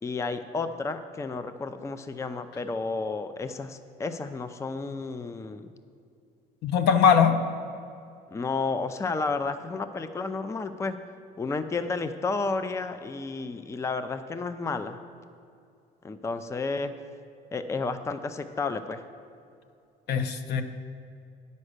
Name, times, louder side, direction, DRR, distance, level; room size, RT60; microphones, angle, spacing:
voice 1, 0.0-5.7 8.3-11.0 11.4-15.0 16.0-16.9 17.5-19.0, left 4 dB, 15° left, 10 dB, 0.4 m, -31 dB
voice 2, 6.6-7.4 20.1-20.6, left 7 dB, 75° left, 8 dB, 0.7 m, -21 dB
9.8 x 5.3 x 6.5 m, 2.5 s
cardioid pair, 110°, 17 cm